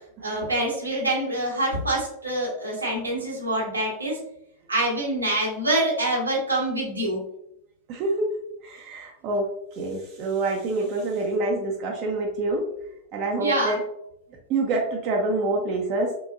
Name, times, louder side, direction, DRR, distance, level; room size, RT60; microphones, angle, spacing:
voice 1, 0.2-4.2 4.7-7.2 13.4-13.7, right 1 dB, 80° right, -3 dB, 1.6 m, -25 dB
voice 2, 7.9-8.3 8.6-9.4 9.8-12.6 13.1-13.8 14.5-16.1, right 2 dB, 40° right, 0 dB, 0.7 m, -26 dB
4.5 x 3.6 x 2.6 m, 0.77 s
figure-of-eight pair, 90°, 0 cm